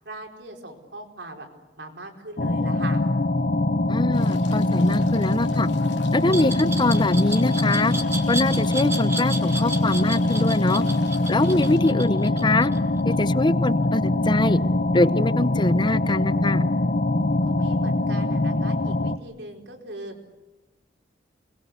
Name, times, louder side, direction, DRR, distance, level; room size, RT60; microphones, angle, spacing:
voice 1, 0.0-1.5 1.8-3.0 17.5-20.2, right 2 dB, 75° right, 3 dB, 4.4 m, -39 dB
sound 1, 2.4-19.2, left 2 dB, 55° left, 0.9 m, -23 dB
voice 2, 3.9-5.7 6.1-7.9 8.3-10.8 11.3-12.7 13.0-14.6 14.9-16.6, left 2 dB, 25° left, 15 dB, 0.8 m, -23 dB
sound 2, 4.1-11.8, left 4 dB, 85° left, 3.2 m, -46 dB
Glass, 6.3-13.1, right 2 dB, 15° right, 4.1 m, -32 dB
28.0 x 21.5 x 8.2 m, 1.1 s
head